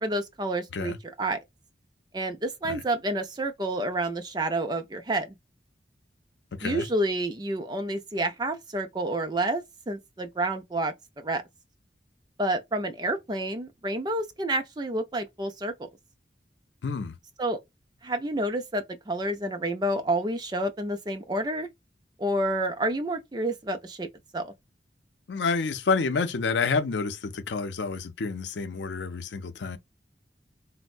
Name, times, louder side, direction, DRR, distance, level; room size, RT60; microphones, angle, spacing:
voice 1, 0.0-1.4 2.1-5.3 6.6-10.9 11.2-11.4 12.4-15.7 17.4-17.6 18.0-21.7 22.2-24.1 24.3-24.5, right 1 dB, 25° right, 0.4 m, -29 dB
voice 2, 6.5-6.9 16.8-17.1 25.3-29.8, left 4 dB, 85° left, 0.5 m, -29 dB
4.2 x 2.1 x 2.3 m
head